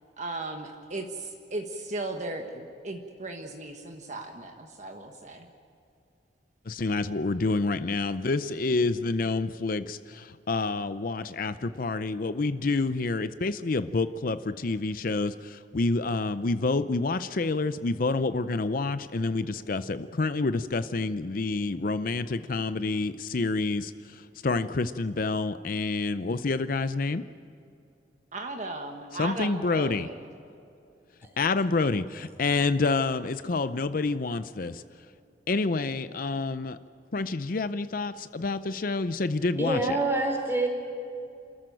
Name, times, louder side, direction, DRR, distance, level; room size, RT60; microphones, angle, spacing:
voice 1, 0.2-5.5 28.3-30.3, right 2 dB, 40° right, 3 dB, 1.4 m, -36 dB
voice 2, 6.7-27.2 29.1-30.1 31.4-34.8 35.5-36.8 37.1-40.0, left 3 dB, 50° left, 12 dB, 0.6 m, -28 dB
voice 3, 39.6-40.7, right 2 dB, 15° right, 2 dB, 4.3 m, -26 dB
27.5 x 14.0 x 9.0 m, 2.6 s
head